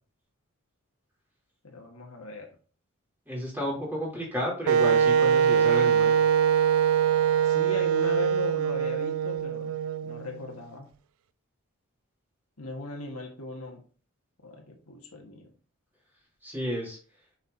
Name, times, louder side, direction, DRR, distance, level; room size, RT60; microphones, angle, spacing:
voice 1, 1.6-2.5 7.4-9.8 10.0-10.9 12.6-13.8 14.4-15.5, left 2 dB, 85° left, 2 dB, 1.6 m, -38 dB
voice 2, 3.3-6.2 16.4-17.0, equal, 10° right, -5 dB, 3.2 m, -32 dB
Wind instrument woodwind instrument, 4.7-10.5, right 8 dB, 70° right, 0.3 m, -23 dB
7.0 x 5.9 x 2.8 m, 0.40 s
head